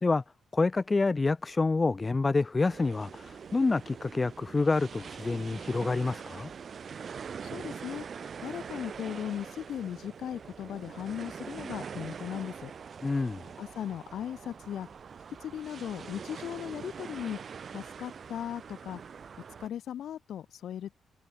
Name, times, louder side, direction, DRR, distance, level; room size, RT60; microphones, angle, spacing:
voice 1, 0.5-6.5 13.0-13.4, left 3 dB, 20° left, 1.5 m, -27 dB
sound 1, 2.7-19.7, right 6 dB, 40° right, 3.5 m, -43 dB
voice 2, 7.4-8.1 8.4-12.7 13.6-14.9 15.4-17.4 17.7-19.0 19.6-21.0, left 10 dB, 65° left, 6.1 m, -37 dB
wide cardioid pair, 160°, 0 cm